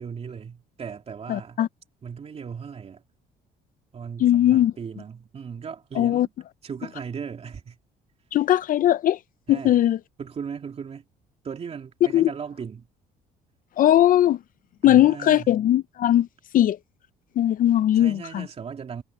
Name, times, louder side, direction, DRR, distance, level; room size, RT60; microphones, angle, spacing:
voice 1, 0.0-1.6 2.0-3.0 3.9-6.3 6.6-7.8 9.5-9.8 10.2-11.0 11.4-12.9 14.8-15.5 17.9-19.0, right 6 dB, 40° right, 2.7 m, -37 dB
voice 2, 1.3-1.7 4.2-4.7 6.0-6.3 8.3-9.2 9.5-10.0 12.1-12.3 13.8-14.4 14.8-16.3 16.5-16.8 17.4-18.5, left 12 dB, 55° left, 0.5 m, -19 dB
cardioid pair, 110°, 17 cm